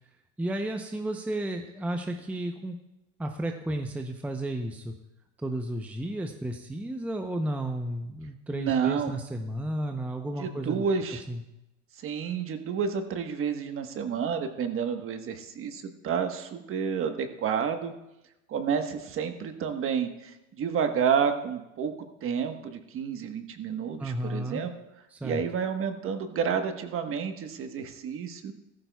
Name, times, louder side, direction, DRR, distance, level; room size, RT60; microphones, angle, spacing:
voice 1, 0.4-2.8 3.2-4.9 5.4-10.9 11.3-11.4 24.0-24.6 25.1-25.4, right 1 dB, 5° right, 4 dB, 0.7 m, -33 dB
voice 2, 8.5-9.1 10.4-11.2 12.0-17.9 18.5-21.9 22.2-24.7 25.2-28.5, right 7 dB, 35° right, 7 dB, 1.3 m, -30 dB
15.5 x 14.0 x 2.3 m, 0.91 s
supercardioid pair, 110°, 37 cm